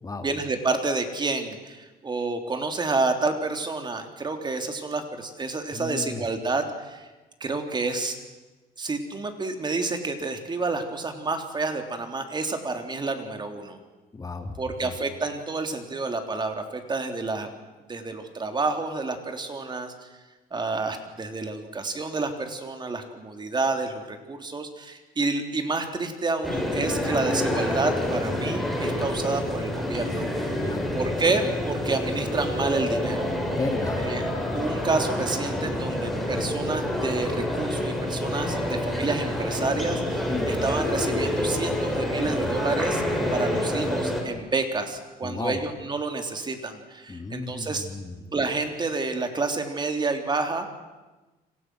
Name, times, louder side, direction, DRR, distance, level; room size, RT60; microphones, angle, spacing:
voice 1, 0.2-7.1 7.4-8.2 8.8-13.8 14.6-17.5 17.9-20.1 20.5-30.3 30.9-33.3 34.0-43.0 43.3-47.9 48.3-50.7, right 3 dB, 25° right, 5 dB, 3.4 m, -29 dB
voice 2, 5.7-6.2 14.1-14.9 30.6-31.0 33.5-34.0 40.3-40.5 45.2-45.7 47.1-48.2, left 3 dB, 20° left, 6 dB, 2.4 m, -33 dB
sound 1, 26.4-44.2, left 1 dB, ahead, 7.0 m, -27 dB
29.0 x 25.5 x 6.3 m, 1.2 s
cardioid pair, 110°, 17 cm